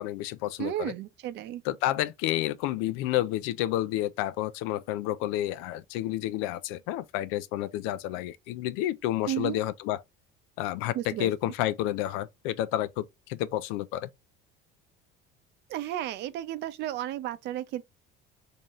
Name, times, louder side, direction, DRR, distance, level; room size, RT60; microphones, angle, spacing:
voice 1, 0.0-0.9 1.7-10.0 10.6-14.1, left 14 dB, 85° left, 0.5 m, -30 dB
voice 2, 0.6-1.6 9.2-9.6 10.9-11.5 15.7-17.8, right 13 dB, 55° right, 0.6 m, -33 dB
3.8 x 2.7 x 2.9 m
cardioid pair, 145°, 21 cm